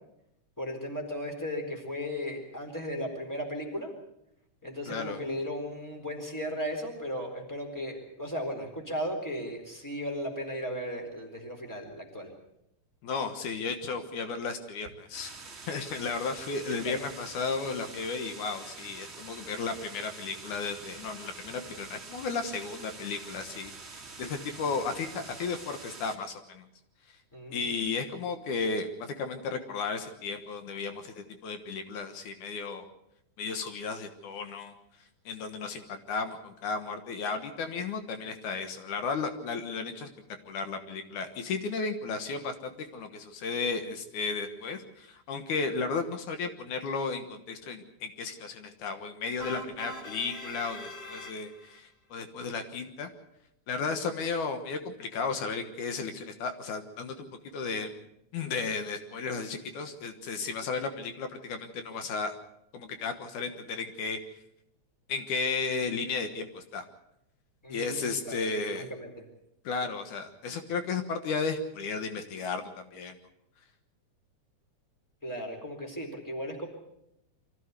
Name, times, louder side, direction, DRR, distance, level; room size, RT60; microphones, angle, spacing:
voice 1, 0.6-3.9 4.6-12.3 16.8-17.0 27.3-27.6 67.6-69.2 75.2-76.7, equal, 5° left, 3 dB, 4.0 m, -36 dB
voice 2, 4.9-5.2 13.0-15.3 15.7-26.6 27.5-32.9 33.4-34.7 35.3-40.1 40.5-53.1 53.7-57.9 58.3-62.4 62.7-64.2 65.1-66.8 67.7-68.9 69.6-72.6 72.9-73.1, left 4 dB, 75° left, 7 dB, 2.8 m, -34 dB
sound 1, 15.1-26.2, right 4 dB, 20° right, 2.9 m, -46 dB
sound 2, 49.4-51.8, left 1 dB, 50° left, 3.4 m, -42 dB
24.0 x 15.0 x 8.1 m, 0.82 s
omnidirectional pair, 3.5 m